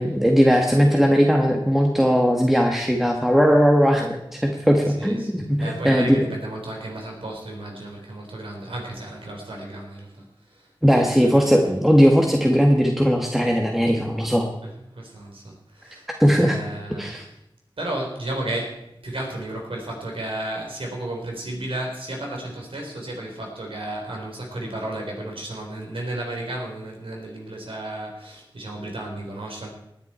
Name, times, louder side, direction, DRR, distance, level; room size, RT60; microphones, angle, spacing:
voice 1, 0.0-6.2 10.8-14.5 16.2-16.6 17.0-17.2, equal, 5° right, 1 dB, 1.8 m, -18 dB
voice 2, 4.9-11.8 14.6-16.1 16.4-17.2 17.8-29.7, right 1 dB, 80° right, 0 dB, 4.2 m, -33 dB
18.5 x 9.8 x 4.5 m, 0.82 s
wide cardioid pair, 50°, 9 cm